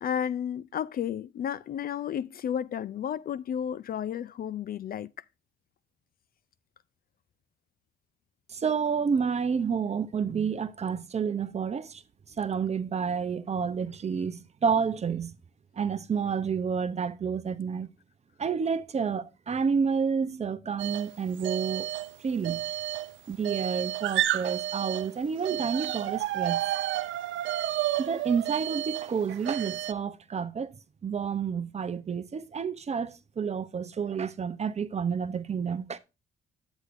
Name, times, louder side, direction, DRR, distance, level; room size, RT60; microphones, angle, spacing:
voice 1, 0.0-5.1, left 9 dB, 50° left, 0.4 m, -32 dB
voice 2, 8.5-12.0 12.4-15.3 15.7-17.9 18.4-21.9 22.2-22.6 23.3-26.6 28.0-36.0, right 6 dB, 35° right, 0.6 m, -29 dB
sound 1, 20.8-21.1 21.4-22.1 22.4-25.1 25.4-29.9, right 13 dB, 75° right, 0.4 m, -31 dB
8.1 x 8.0 x 2.5 m
cardioid pair, 90°, 20 cm